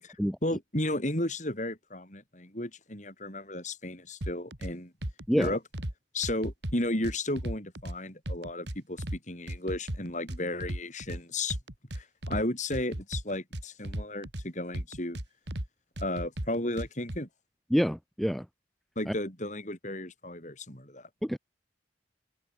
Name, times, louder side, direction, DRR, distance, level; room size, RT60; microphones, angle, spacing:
voice 1, 0.4-4.9 5.4-5.6 6.1-11.6 11.9-15.2 16.0-17.3 19.0-21.1, left 1 dB, 40° left, 8.0 m, -34 dB
sound 1, 4.2-4.7 5.0-5.9 6.2-8.0 8.3-9.2 9.5-11.2 11.5-12.4 12.7-14.4 14.7-15.7 16.0-17.2, right 1 dB, 70° right, 3.2 m, -35 dB
voice 2, 17.7-18.4 19.1-19.2 21.2-21.4, equal, ahead, 1.0 m, -27 dB
head